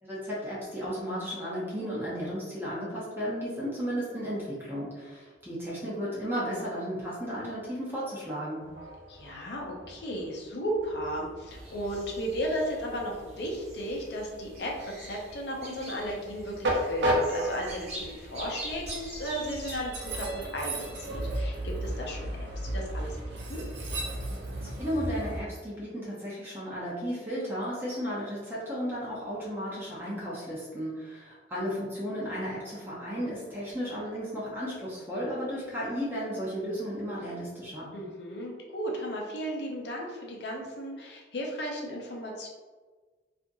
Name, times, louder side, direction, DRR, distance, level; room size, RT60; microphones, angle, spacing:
voice 1, 0.0-8.6 24.6-37.9, equal, 15° right, -8 dB, 0.7 m, -34 dB
Train, 8.6-25.4, right 1 dB, 75° right, 0.6 m, -35 dB
voice 2, 9.1-22.2 22.6-23.6 37.9-42.5, equal, 65° left, -1 dB, 0.6 m, -35 dB
sound 1, 11.5-19.8, right 1 dB, 35° right, 0.8 m, -45 dB
2.8 x 2.4 x 2.6 m, 1.4 s
head